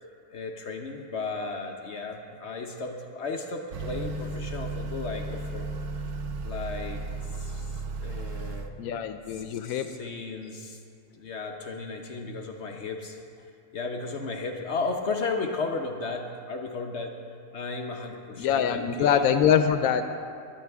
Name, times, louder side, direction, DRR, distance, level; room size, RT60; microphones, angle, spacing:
voice 1, 0.3-5.9 6.4-7.0 7.3-8.7 9.3-10.8 11.1-17.2 17.5-19.2, left 3 dB, 55° left, 3 dB, 1.0 m, -35 dB
Motor vehicle (road) / Accelerating revving vroom, 3.7-8.7, right 3 dB, 70° right, 1.1 m, -34 dB
voice 2, 8.8-9.9 18.4-20.1, left 8 dB, 90° left, 8 dB, 1.0 m, -24 dB
20.0 x 10.5 x 3.5 m, 2.4 s
omnidirectional pair, 1.4 m